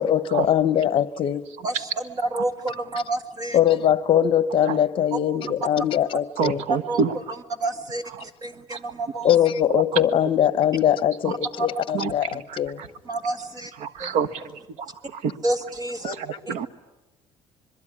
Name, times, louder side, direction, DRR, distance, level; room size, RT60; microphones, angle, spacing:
voice 1, 0.0-1.4 3.5-6.6 9.2-12.3 12.6-12.8 16.0-16.1, left 10 dB, 50° left, 0.9 m, -21 dB
voice 2, 2.2-3.6 5.1-5.2 6.9-7.0 7.6-9.3 11.6-11.7 13.1-13.7 14.0-14.1 15.4-16.2 16.5-16.7, right 2 dB, 35° right, 1.8 m, -29 dB
voice 3, 6.4-7.2 8.2-8.3 8.7-8.8 9.7-10.0 11.2-11.3 11.9-12.9 13.8-15.4 16.1-16.7, right 6 dB, 80° right, 1.4 m, -28 dB
26.0 x 22.0 x 9.9 m
cardioid pair, 140°, 12 cm